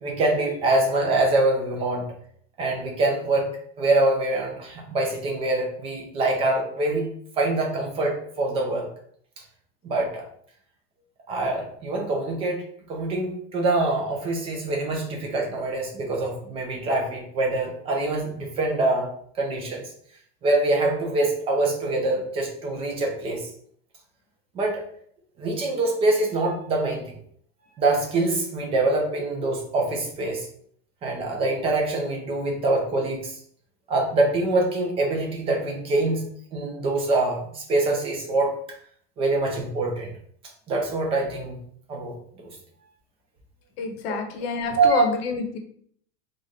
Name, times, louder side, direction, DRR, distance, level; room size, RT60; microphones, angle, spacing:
voice 1, 0.0-2.1 2.6-3.5 3.8-7.1 7.4-8.9 9.8-10.2 11.3-12.6 12.9-19.1 19.4-19.8 20.4-23.5 24.5-24.8 25.4-27.2 27.8-30.5 31.0-33.3 33.9-38.5 39.2-40.1 40.7-41.6 41.9-42.5 44.1-44.2 44.7-45.0, right 2 dB, 20° right, 0 dB, 0.6 m, -24 dB
voice 2, 43.8-45.6, left 5 dB, 80° left, 5 dB, 0.8 m, -28 dB
4.0 x 2.4 x 3.2 m, 0.63 s
supercardioid pair, 170°, 30 cm